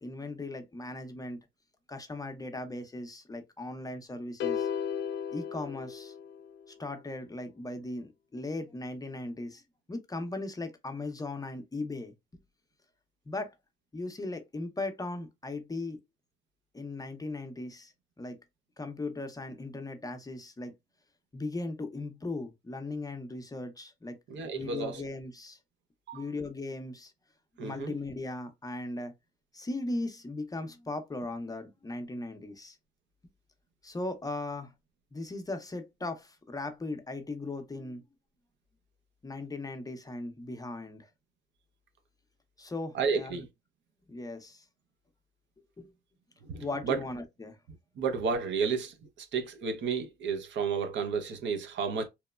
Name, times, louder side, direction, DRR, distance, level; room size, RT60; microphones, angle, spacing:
voice 1, 0.0-1.4 1.9-4.7 5.3-6.1 6.7-9.6 9.9-12.1 13.3-13.5 13.9-16.0 16.7-18.4 18.8-20.7 21.3-24.2 24.5-25.6 26.1-27.1 27.6-29.1 29.5-32.8 33.8-34.7 35.1-38.0 39.2-41.1 42.6-43.5 44.1-44.6 45.8-45.9 46.6-47.6, left 2 dB, 20° left, 0.5 m, -38 dB
sound 1, 4.4-6.7, left 8 dB, 65° left, 0.4 m, -34 dB
voice 2, 24.3-25.0 26.1-26.3 27.6-27.9 42.9-43.5 46.4-47.0 48.0-52.1, right 5 dB, 65° right, 0.6 m, -32 dB
2.9 x 2.0 x 2.2 m
cardioid pair, 90°, 20 cm